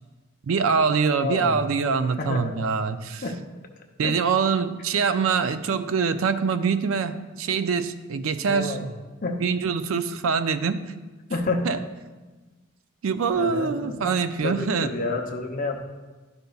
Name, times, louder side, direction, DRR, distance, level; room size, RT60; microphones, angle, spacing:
voice 1, 0.4-3.2 4.0-8.8 9.4-10.8 11.6-11.8 13.0-14.9, right 5 dB, 75° right, 11 dB, 0.4 m, -24 dB
voice 2, 1.2-1.6 2.2-2.5 3.2-3.4 4.0-4.2 8.5-8.9 9.2-9.4 11.3-11.7 13.4-14.2 14.4-15.8, left 3 dB, 40° left, 2 dB, 0.6 m, -29 dB
11.5 x 5.2 x 2.3 m, 1.2 s
head